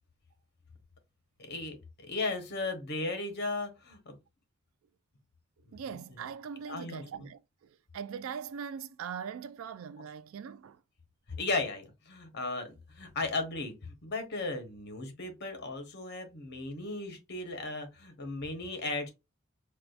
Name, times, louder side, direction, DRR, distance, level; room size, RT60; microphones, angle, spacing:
voice 1, 1.4-4.2 6.7-7.0 11.3-19.1, left 3 dB, 55° left, 1.0 m, -36 dB
voice 2, 5.6-10.8, right 7 dB, 70° right, 0.3 m, -41 dB
4.5 x 2.3 x 2.4 m
head